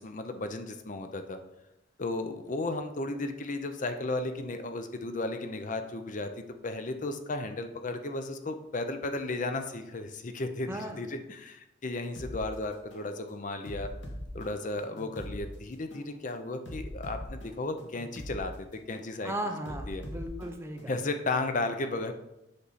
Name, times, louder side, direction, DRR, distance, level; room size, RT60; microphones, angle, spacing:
voice 1, 0.0-1.4 2.0-6.3 6.6-13.9 14.3-19.3 19.9-20.0 20.9-22.1, left 2 dB, 40° left, 7 dB, 0.6 m, -34 dB
voice 2, 10.7-11.0 19.2-20.9, right 1 dB, 15° right, 4 dB, 0.8 m, -36 dB
sound 1, 12.2-12.4 12.9-13.1 13.7-15.4 15.9-16.1 16.7-18.4 18.9-19.1 19.7-21.2, equal, 65° left, 1.6 m, -42 dB
8.5 x 6.0 x 4.1 m, 0.88 s
head